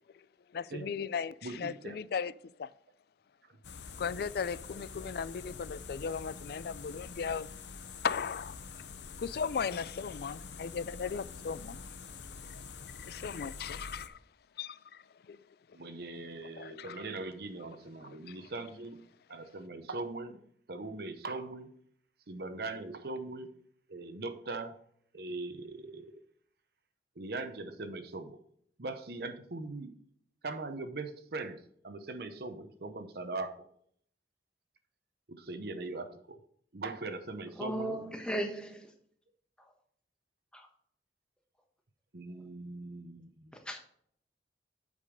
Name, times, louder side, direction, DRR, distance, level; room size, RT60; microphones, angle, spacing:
voice 1, 0.5-2.3 2.6-2.7 4.0-7.5 8.0-8.6 9.2-11.8 12.5-12.6 13.0-14.2 14.6-15.4 16.5-17.1 18.0-18.5, left 6 dB, 60° left, 0.4 m, -37 dB
voice 2, 1.4-2.0 15.7-19.0 19.3-20.4 20.7-21.8 22.3-23.5 23.9-24.8 25.1-26.2 27.2-28.4 28.8-29.9 30.4-33.5 35.3-36.4 36.7-37.9 42.1-43.5, right 3 dB, 60° right, 0.8 m, -40 dB
sound 1, 3.6-14.1, left 5 dB, 80° left, 0.7 m, -46 dB
voice 3, 37.6-38.9 40.5-40.6 43.7-43.8, right 1 dB, 5° left, 1.2 m, -35 dB
8.4 x 5.3 x 5.2 m
head